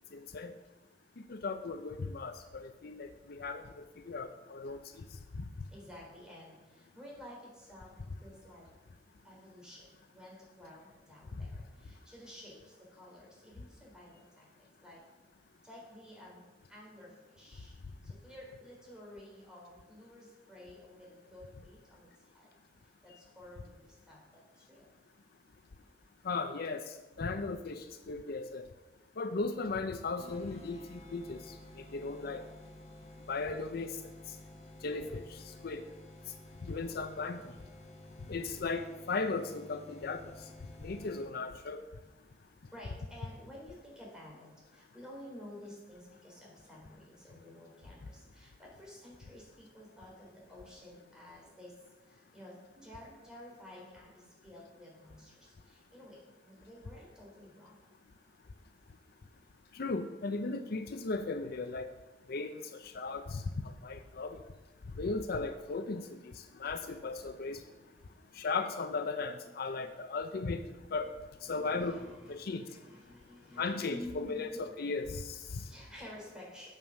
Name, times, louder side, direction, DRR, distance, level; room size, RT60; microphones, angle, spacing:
voice 1, 1.3-3.6 4.1-4.8 5.4-5.5 26.2-26.8 27.2-28.6 29.2-31.4 31.9-32.4 33.3-33.9 34.8-35.2 35.6-35.8 36.7-37.4 38.3-40.2 40.8-41.8 59.7-61.9 62.3-62.5 62.8-63.4 63.8-64.4 65.0-66.0 66.6-67.6 68.4-70.6 70.9-71.1 71.4-72.0 72.3-72.6 73.6-75.6, left 3 dB, 55° left, 9 dB, 0.5 m, -36 dB
voice 2, 5.7-7.9 8.2-8.7 9.2-12.6 12.9-14.5 14.8-15.0 15.6-16.4 16.7-17.7 18.0-22.1 22.3-22.5 23.0-24.9 42.7-51.7 52.1-57.8 65.4-65.5 67.8-68.2 71.4-74.6 75.5-76.7, left 1 dB, 5° right, -4 dB, 3.6 m, -52 dB
sound 1, 30.2-41.6, left 1 dB, 35° left, 1.3 m, -52 dB
8.9 x 7.2 x 6.3 m, 1.1 s
head